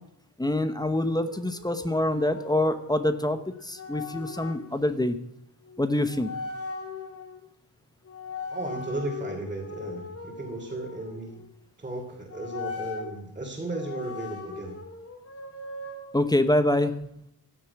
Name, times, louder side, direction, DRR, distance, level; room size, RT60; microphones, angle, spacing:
voice 1, 0.4-5.2 5.8-6.3 16.1-16.9, left 1 dB, 10° left, 10 dB, 1.0 m, -25 dB
sound 1, 0.9-4.6 5.7-5.8 6.1-7.4 8.1-11.5 12.3-13.1 13.7-16.0, left 4 dB, 40° left, 2.6 m, -39 dB
voice 2, 8.5-11.4 11.8-14.8, right 2 dB, 20° right, -2 dB, 3.0 m, -35 dB
17.0 x 11.0 x 6.0 m, 0.74 s
wide cardioid pair, 165°, 37 cm